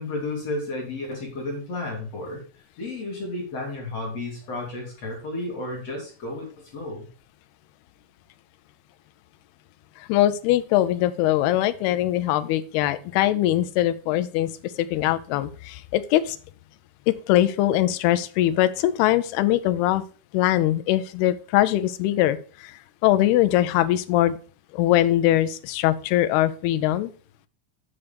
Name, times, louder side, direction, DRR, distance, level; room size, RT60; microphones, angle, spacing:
voice 1, 0.0-2.4 2.8-7.1, left 2 dB, 45° left, -1 dB, 3.0 m, -32 dB
voice 2, 10.0-14.5 14.8-16.4 17.1-20.0 20.3-24.4 24.7-27.1, left 14 dB, 80° left, 12 dB, 2.6 m, -22 dB
7.1 x 6.7 x 5.1 m, 0.38 s
omnidirectional pair, 4.7 m